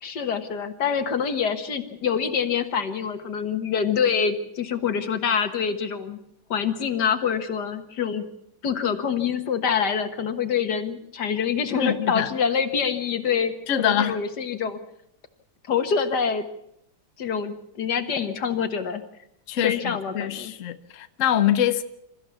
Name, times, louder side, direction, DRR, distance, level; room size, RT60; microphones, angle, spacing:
voice 1, 0.0-6.2 6.5-8.3 8.6-13.5 13.8-14.8 15.7-16.4 17.2-19.0 19.6-20.5, left 7 dB, 80° left, 2.1 m, -26 dB
voice 2, 11.8-12.3 13.7-14.2 19.5-19.8 20.1-21.8, left 10 dB, 55° left, 1.2 m, -24 dB
27.5 x 14.5 x 7.1 m
omnidirectional pair, 1.8 m